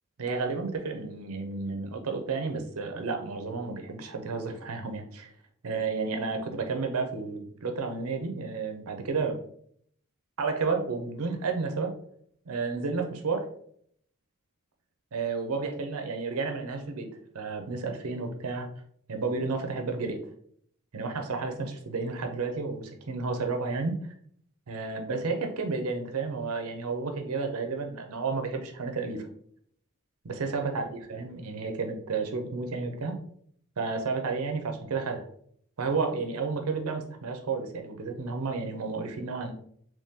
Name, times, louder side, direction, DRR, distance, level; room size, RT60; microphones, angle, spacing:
voice 1, 0.2-5.3 5.6-9.4 10.4-11.9 12.5-13.5 15.1-17.1 17.3-18.7 19.1-20.2 20.9-24.0 24.7-29.3 30.2-30.8 31.1-33.2 33.8-35.2 35.8-39.5, right 4 dB, 80° right, 5 dB, 0.6 m, -31 dB
3.6 x 3.0 x 2.8 m, 0.65 s
head